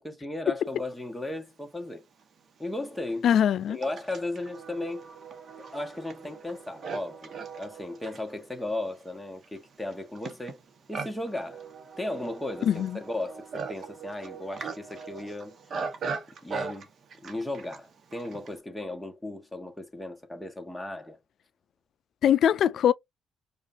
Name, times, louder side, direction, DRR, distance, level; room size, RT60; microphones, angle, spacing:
voice 1, 0.0-2.0 2.6-3.3 3.7-5.1 5.7-10.6 10.9-11.6 12.0-15.5 16.4-16.9 17.2-21.2, left 2 dB, 5° left, 1.4 m, -36 dB
Livestock farm animals working animals, 1.8-1.9 2.7-18.6, right 5 dB, 55° right, 1.0 m, -40 dB
voice 2, 3.2-3.8 12.6-13.0 22.2-22.9, left 9 dB, 65° left, 0.3 m, -22 dB
5.0 x 2.5 x 2.7 m
cardioid pair, 90°, 0 cm